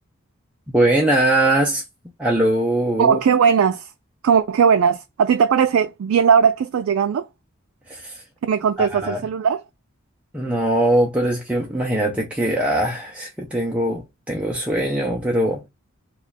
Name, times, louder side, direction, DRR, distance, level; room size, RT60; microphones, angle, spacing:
voice 1, 0.7-1.8 2.2-3.2 7.9-8.2 8.8-9.2 10.3-15.7, right 1 dB, 5° right, 0.4 m, -21 dB
voice 2, 3.0-3.9 4.2-7.3 8.4-9.6, right 7 dB, 75° right, 0.3 m, -18 dB
2.9 x 2.3 x 4.0 m
head